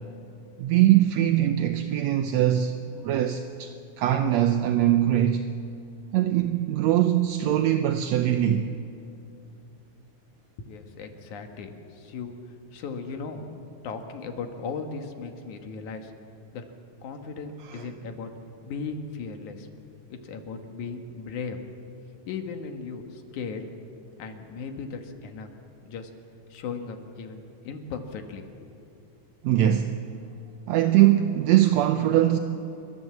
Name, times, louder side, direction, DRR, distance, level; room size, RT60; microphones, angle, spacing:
voice 1, 0.6-2.8 3.0-5.5 6.1-8.7 17.7-17.9 29.4-30.0 30.7-32.4, right 12 dB, 75° right, 1.7 m, -22 dB
voice 2, 10.6-12.4 12.7-13.6 13.8-16.1 16.5-16.6 17.0-18.3 18.6-19.7 20.1-21.6 22.3-23.6 24.2-25.5 25.9-26.1 26.5-28.5 28.8-28.9, left 5 dB, 75° left, 2.8 m, -37 dB
29.0 x 13.5 x 7.7 m
omnidirectional pair, 3.5 m